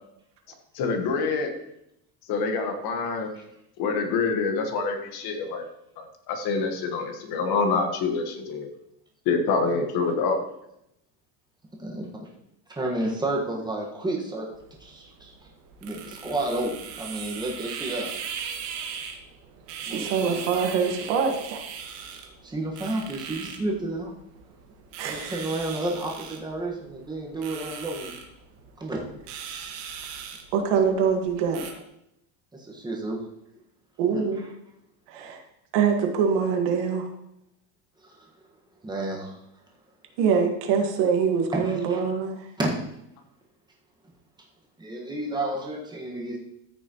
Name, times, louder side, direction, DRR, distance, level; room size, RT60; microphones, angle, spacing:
voice 1, 0.7-1.5 2.3-3.3 3.8-5.6 6.0-8.7 9.2-10.4, left 4 dB, 50° left, 5 dB, 1.5 m, -26 dB
voice 2, 11.8-12.3 12.7-14.5 14.8-15.5 15.8-18.1 19.8-20.4 22.4-24.1 25.0-28.2 28.8-29.0 32.5-33.2 34.1-34.2 38.0-38.3 38.8-39.4 41.5-42.0 42.6-42.7 44.8-46.4, right 2 dB, 10° right, -1 dB, 1.5 m, -31 dB
sound 1, 14.5-31.7, right 7 dB, 85° right, 1.8 m, -39 dB
voice 3, 19.8-21.6 25.0-25.3 30.5-31.8 34.0-34.5 35.1-35.4 35.7-37.1 40.2-42.5, right 6 dB, 60° right, 3 dB, 1.8 m, -24 dB
14.0 x 6.2 x 3.1 m, 0.80 s
cardioid pair, 160°, 47 cm